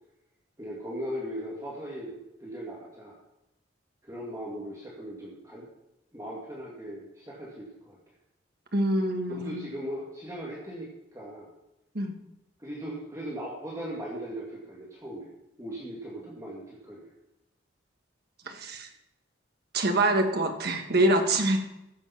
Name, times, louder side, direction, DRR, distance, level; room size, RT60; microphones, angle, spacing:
voice 1, 0.6-3.2 4.0-5.7 6.1-8.0 9.3-11.5 12.6-15.3 15.6-17.1, equal, 15° right, -5 dB, 2.2 m, -38 dB
voice 2, 8.7-9.6 11.9-12.1 18.4-18.9 19.7-21.6, right 1 dB, 55° right, 4 dB, 1.7 m, -25 dB
15.0 x 7.3 x 5.9 m, 0.90 s
head